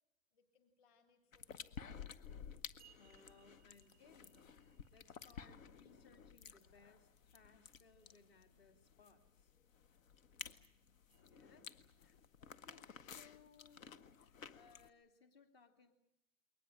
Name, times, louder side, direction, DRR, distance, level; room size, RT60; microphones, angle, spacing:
voice 1, 0.3-2.1 11.2-11.7 12.4-12.5, left 5 dB, 25° left, 6 dB, 2.5 m, -73 dB
sound 1, 1.3-14.9, left 7 dB, 75° left, 1.4 m, -54 dB
sound 2, 2.8-6.4 11.1-11.3, right 10 dB, 5° right, 0.9 m, -71 dB
voice 2, 2.9-4.4 4.6-9.5 11.3-11.6 12.0-13.8 14.2-15.9, left 5 dB, 45° left, 7 dB, 2.7 m, -66 dB
22.0 x 19.0 x 10.0 m, 0.77 s
hypercardioid pair, 175°, 40 cm